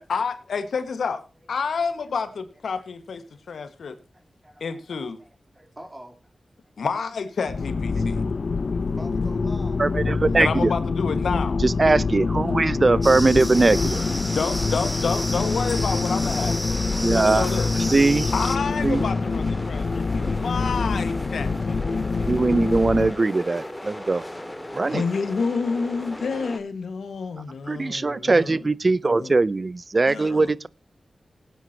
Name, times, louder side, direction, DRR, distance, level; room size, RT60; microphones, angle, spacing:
voice 1, 0.0-4.0 4.6-5.2 6.8-8.2 10.4-11.6 14.2-16.8 17.1-17.7 18.3-22.3 24.9-28.6 29.0-29.3 30.1-30.5, left 5 dB, 85° left, 1.5 m, -29 dB
voice 2, 3.3-3.6 4.1-4.8 5.2-6.7 8.0-10.9 12.5-13.1, right 1 dB, 25° right, 3.3 m, -47 dB
sound 1, 7.5-23.1, left 4 dB, 70° left, 0.7 m, -25 dB
voice 3, 9.8-10.7 11.6-14.0 17.0-17.5 17.8-18.3 18.8-19.1 22.3-24.2 24.7-25.0 27.7-30.7, right 3 dB, 45° right, 0.6 m, -21 dB
sound 2, 13.0-18.6, equal, 5° right, 1.8 m, -33 dB
sound 3, 13.5-26.6, left 1 dB, 15° left, 2.5 m, -37 dB
18.5 x 9.3 x 2.8 m
cardioid pair, 50°, 0 cm